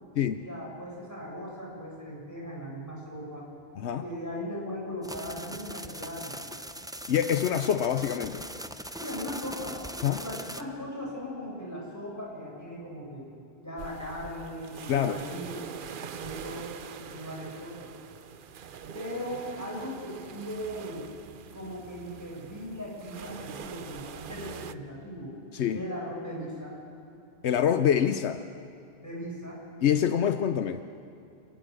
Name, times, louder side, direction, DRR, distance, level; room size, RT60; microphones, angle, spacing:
voice 1, 0.4-3.5 4.0-6.4 9.0-9.8 10.2-13.3 13.6-15.7 16.2-17.9 18.9-21.0 21.5-25.4 25.7-26.7 29.0-29.6, equal, 15° left, -4 dB, 6.7 m, -38 dB
sound 1, 5.0-10.6, right 1 dB, 5° right, 0.4 m, -40 dB
voice 2, 7.1-8.5 10.0-10.2 14.9-15.2 25.5-25.8 27.4-28.4 29.8-30.8, left 9 dB, 80° left, 10 dB, 1.0 m, -25 dB
sound 2, 13.8-24.7, right 8 dB, 55° right, 0.8 m, -44 dB
28.5 x 18.5 x 6.4 m, 2.7 s
omnidirectional pair, 1.1 m